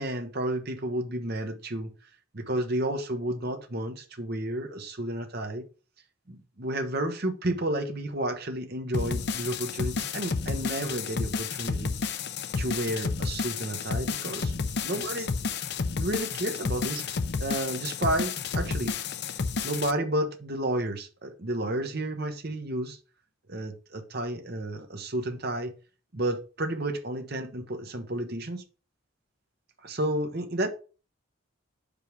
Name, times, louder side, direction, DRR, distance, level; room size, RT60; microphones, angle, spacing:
voice 1, 0.0-1.9 2.3-5.6 6.3-11.9 12.6-14.5 14.8-15.3 16.0-17.0 17.4-18.9 19.6-23.0 23.5-25.7 26.1-28.6 29.8-30.7, right 1 dB, 50° right, 1.0 m, -31 dB
sound 1, 8.9-19.9, left 5 dB, 50° left, 0.5 m, -31 dB
5.4 x 5.2 x 4.6 m
head